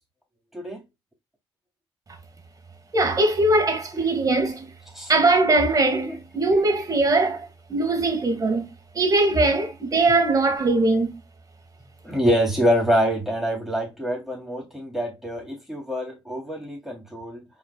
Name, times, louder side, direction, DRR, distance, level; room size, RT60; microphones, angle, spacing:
voice 1, 2.9-4.7 5.1-8.7 8.9-11.2, right 2 dB, 35° right, 1.7 m, -21 dB
voice 2, 12.0-17.4, equal, 5° right, 2.9 m, -25 dB
4.5 x 4.5 x 2.2 m
supercardioid pair, 70°, 10 cm